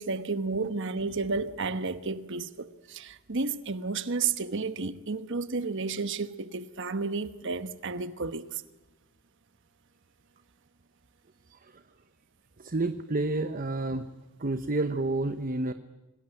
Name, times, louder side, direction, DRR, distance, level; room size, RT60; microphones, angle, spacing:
voice 1, 0.0-8.6, right 4 dB, 55° right, 1.2 m, -32 dB
voice 2, 11.5-11.8 12.6-14.1 14.4-15.7, right 2 dB, 40° right, 0.9 m, -30 dB
26.0 x 19.5 x 9.1 m
head